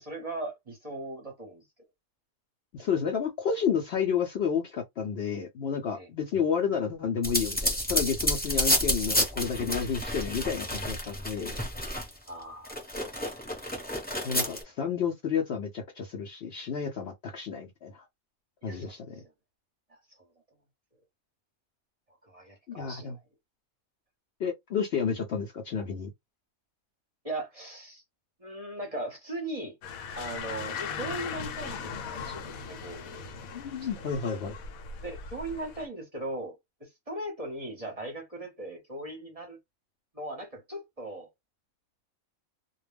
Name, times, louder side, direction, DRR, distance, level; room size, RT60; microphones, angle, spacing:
voice 1, 0.0-1.6 5.9-6.1 12.3-12.7 14.1-14.3 18.6-19.0 19.9-20.0 22.2-23.2 27.2-28.0 28.4-29.8 30.2-33.2 33.5-34.1 35.0-39.6 40.1-41.3, right 1 dB, 30° right, 0.8 m, -39 dB
voice 2, 2.7-11.6 14.2-18.1 18.6-19.2 22.7-23.1 24.4-26.1 33.5-34.6, left 7 dB, 65° left, 0.7 m, -31 dB
sound 1, 7.2-12.3 12.6-14.6, equal, 10° left, 0.7 m, -30 dB
sound 2, 29.8-35.9, left 6 dB, 80° left, 1.0 m, -39 dB
2.2 x 2.2 x 3.3 m
omnidirectional pair, 1.4 m